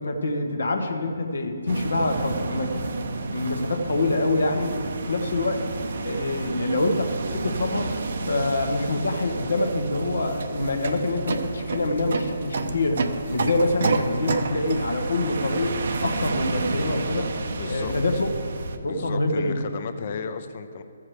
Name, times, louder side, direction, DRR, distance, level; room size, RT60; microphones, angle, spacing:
voice 1, 0.0-4.7 5.1-5.7 6.0-7.9 8.3-13.0 13.3-17.3 17.6-18.3 18.8-19.6, left 2 dB, 75° left, 5 dB, 1.2 m, -26 dB
sound 1, 1.7-18.8, right 3 dB, 60° right, 0.7 m, -30 dB
voice 2, 17.6-18.2 18.8-20.8, left 6 dB, 45° left, 9 dB, 0.6 m, -35 dB
14.0 x 7.3 x 3.3 m, 2.5 s
figure-of-eight pair, 140°, 0 cm